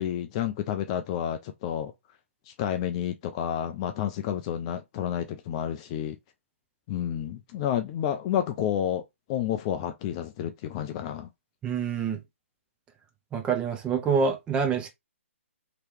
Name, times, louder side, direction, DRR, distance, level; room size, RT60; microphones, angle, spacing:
voice 1, 0.0-1.9 2.5-6.2 6.9-9.0 9.3-11.3, left 10 dB, 25° left, 0.3 m, -30 dB
voice 2, 11.6-12.2 13.3-14.9, right 5 dB, 15° right, 0.6 m, -26 dB
3.0 x 2.9 x 3.2 m
figure-of-eight pair, 135°, 7 cm